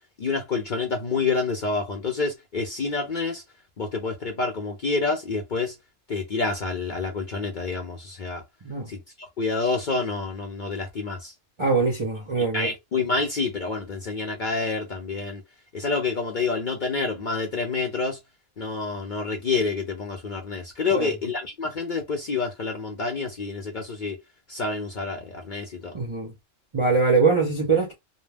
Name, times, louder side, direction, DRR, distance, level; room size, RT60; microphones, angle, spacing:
voice 1, 0.2-3.4 3.8-5.8 6.1-8.4 8.9-11.3 12.5-15.4 15.7-18.2 18.6-24.2 24.5-26.0, left 4 dB, 55° left, 0.6 m, -28 dB
voice 2, 11.6-12.7 20.9-21.1 25.9-26.3 26.7-27.9, right 4 dB, 40° right, 0.4 m, -22 dB
2.2 x 2.1 x 3.3 m
omnidirectional pair, 1.3 m